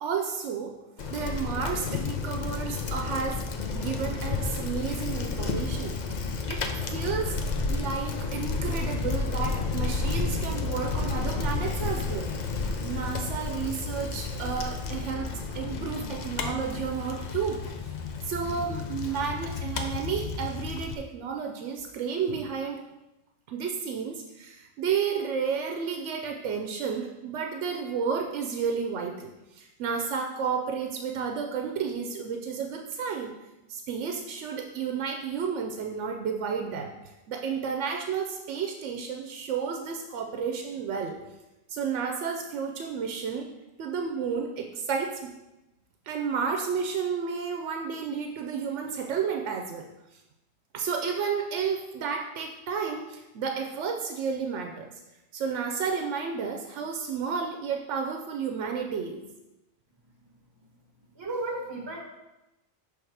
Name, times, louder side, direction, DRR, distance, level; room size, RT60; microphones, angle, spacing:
voice 1, 0.0-3.4 3.7-7.4 7.7-12.3 12.8-15.3 15.5-17.9 18.2-22.8 23.5-33.3 33.7-36.9 37.3-41.2 41.7-43.5 43.8-45.3 46.1-49.9 50.7-54.9 55.3-59.2, right 6 dB, 90° right, 3 dB, 0.9 m, -32 dB
Bicycle, 1.0-20.9, left 4 dB, 50° left, 0.6 m, -31 dB
voice 2, 61.1-62.0, right 2 dB, 25° right, -1 dB, 1.1 m, -33 dB
6.4 x 3.5 x 4.6 m, 1.0 s
omnidirectional pair, 1.2 m